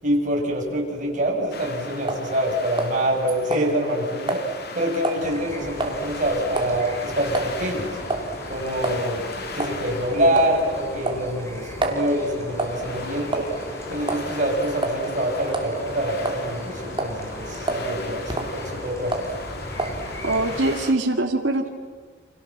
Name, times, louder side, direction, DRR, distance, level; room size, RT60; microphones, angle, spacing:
voice 1, 0.0-8.0 8.5-9.2 9.5-13.4 13.9-19.1, right 1 dB, 45° right, -1 dB, 6.9 m, -25 dB
sound 1, 1.5-20.9, left 3 dB, 60° left, 2.7 m, -38 dB
sound 2, 2.1-2.3 2.8-3.2 3.5-3.7 4.3-4.5 5.0-5.2 5.8-6.0 6.6-6.8 7.3-7.5 8.1-8.3 8.8-9.0 9.6-9.8 10.4-10.6 11.1-12.0 12.6-12.8 13.3-13.7 14.1-14.3 14.8-15.0 15.5-15.7 16.3-16.7 17.0-17.2 17.7-17.9 18.3-18.5 19.1-19.3 19.8-20.0, right 2 dB, 25° right, 3.0 m, -27 dB
sound 3, 5.2-20.8, equal, 15° left, 5.2 m, -37 dB
voice 2, 20.2-21.7, right 2 dB, 80° right, 2 dB, 2.2 m, -22 dB
30.0 x 26.0 x 7.5 m, 1.5 s
head